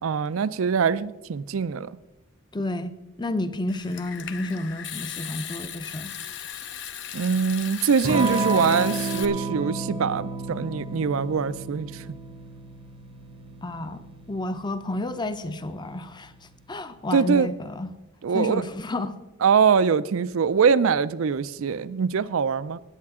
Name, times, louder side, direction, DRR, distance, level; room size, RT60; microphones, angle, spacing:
voice 1, 0.0-1.9 7.1-12.0 17.1-17.5 18.2-18.6 19.4-22.8, right 6 dB, 65° right, 0.4 m, -23 dB
voice 2, 2.5-6.1 13.6-14.0 14.3-16.3 16.7-17.9 18.3-19.2, left 2 dB, 20° left, 0.6 m, -30 dB
Water tap faucet / Sink (filling or washing) / Trickle dribble, 3.7-9.3, left 9 dB, 55° left, 0.7 m, -37 dB
Electric guitar / Strum, 8.0-16.3, right 3 dB, 25° right, 0.7 m, -32 dB
18.5 x 8.5 x 3.7 m
head